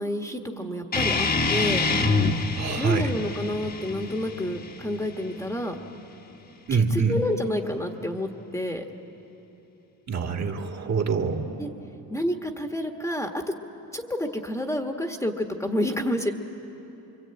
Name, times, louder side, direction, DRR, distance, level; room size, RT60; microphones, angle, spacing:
voice 1, 0.0-1.8 2.8-5.7 6.7-8.8 11.6-11.7 12.1-13.3 13.9-16.3, left 1 dB, 10° left, 3 dB, 1.3 m, -29 dB
sound 1, 0.9-6.0, left 3 dB, 25° left, 1.3 m, -27 dB
voice 2, 2.6-3.1 6.7-7.2 10.1-11.5, right 5 dB, 45° right, 2 dB, 2.1 m, -25 dB
26.0 x 24.0 x 8.8 m, 3.0 s
cardioid pair, 130°, 37 cm